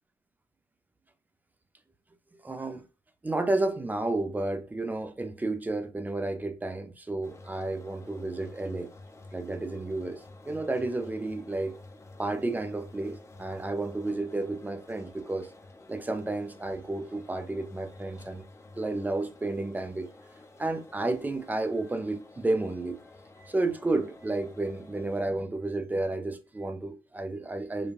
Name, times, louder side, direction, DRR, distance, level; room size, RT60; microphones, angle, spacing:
voice 1, 2.4-2.9 3.2-8.9 9.3-11.7 12.2-15.5 15.9-18.4 18.8-20.1 20.6-23.0 23.4-27.9, right 2 dB, 15° right, 0.6 m, -31 dB
sound 1, 7.2-25.2, left 2 dB, 25° left, 0.8 m, -51 dB
5.1 x 2.3 x 2.4 m
cardioid pair, 90°, 11 cm